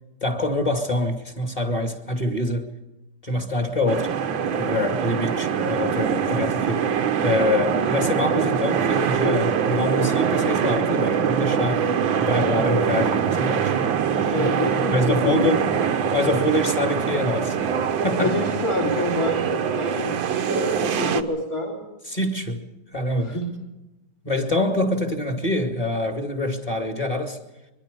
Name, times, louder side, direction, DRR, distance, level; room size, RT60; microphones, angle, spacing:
voice 1, 0.2-2.7 3.2-4.1 4.6-7.0 7.2-11.9 12.2-13.7 14.2-14.3 14.9-15.6 16.1-17.8 18.0-18.4 22.1-22.7 22.9-23.4 24.2-27.4, left 1 dB, 20° left, 2.3 m, -25 dB
sound 1, 3.9-21.2, right 7 dB, 80° right, 1.9 m, -23 dB
voice 2, 14.3-15.7 18.2-21.8 23.2-23.5, left 2 dB, 45° left, 4.3 m, -27 dB
24.0 x 23.5 x 5.4 m
omnidirectional pair, 2.1 m